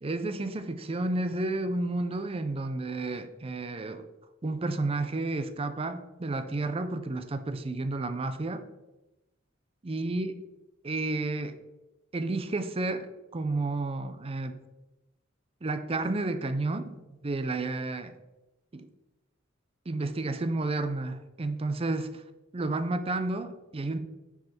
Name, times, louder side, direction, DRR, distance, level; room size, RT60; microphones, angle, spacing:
voice 1, 0.0-4.1 4.4-8.6 9.8-10.3 10.8-11.6 12.1-14.6 15.6-18.1 18.7-18.9 19.9-22.2 22.5-24.0, right 2 dB, 30° right, 10 dB, 0.5 m, -31 dB
6.3 x 4.8 x 4.3 m, 1.0 s
head